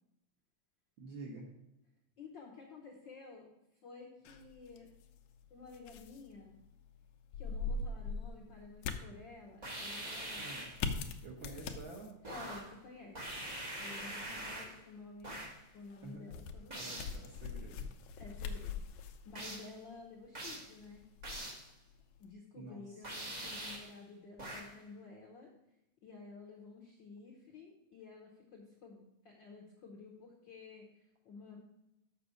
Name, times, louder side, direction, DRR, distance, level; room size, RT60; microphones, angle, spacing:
voice 1, 1.0-1.5 10.4-10.7 11.2-12.2 16.0-16.4 16.7-17.9 22.6-23.0, right 3 dB, 60° right, 0 dB, 1.3 m, -49 dB
voice 2, 2.2-3.5 3.8-4.9 5.5-6.6 7.3-10.5 12.2-13.5 13.8-15.4 15.7-16.9 18.2-21.0 22.2-25.5 26.0-31.6, left 4 dB, 65° left, 0 dB, 1.2 m, -52 dB
sound 1, 4.2-22.3, left 4 dB, 85° left, 2.1 m, -44 dB
sound 2, 9.6-10.8 12.2-12.8 13.1-14.8 15.2-15.6 16.7-17.2 19.3-19.7 20.3-20.7 21.2-21.7 23.0-23.9 24.4-24.8, right 1 dB, 40° right, 0.5 m, -43 dB
6.8 x 6.1 x 6.2 m, 0.91 s
omnidirectional pair, 3.3 m